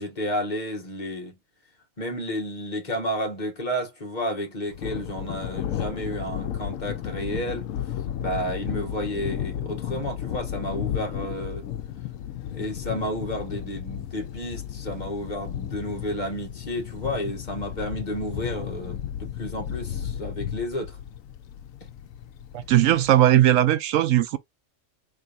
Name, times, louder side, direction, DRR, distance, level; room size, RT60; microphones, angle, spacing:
voice 1, 0.0-1.4 2.0-7.7 8.2-11.7 12.5-21.0, equal, 35° left, 1.4 m, -31 dB
Thunder, 4.7-23.1, left 10 dB, 80° left, 1.0 m, -33 dB
voice 2, 22.5-24.4, right 12 dB, 80° right, 1.0 m, -18 dB
4.2 x 3.4 x 2.4 m
omnidirectional pair, 1.4 m